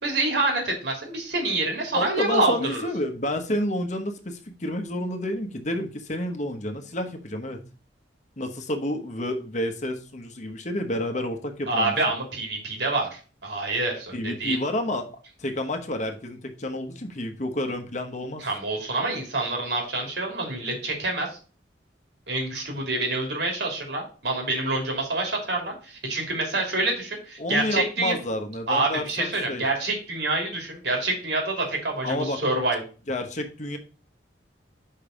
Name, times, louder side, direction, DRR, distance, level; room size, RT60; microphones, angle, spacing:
voice 1, 0.0-2.9 11.7-14.6 18.4-21.4 22.3-28.1 28.7-32.8, right 2 dB, 70° right, 1 dB, 3.0 m, -27 dB
voice 2, 1.9-7.6 8.4-11.9 14.1-15.1 15.4-18.4 27.4-29.6 32.0-32.4 33.1-33.8, left 1 dB, 40° left, 6 dB, 1.1 m, -29 dB
5.6 x 5.3 x 5.1 m, 0.36 s
head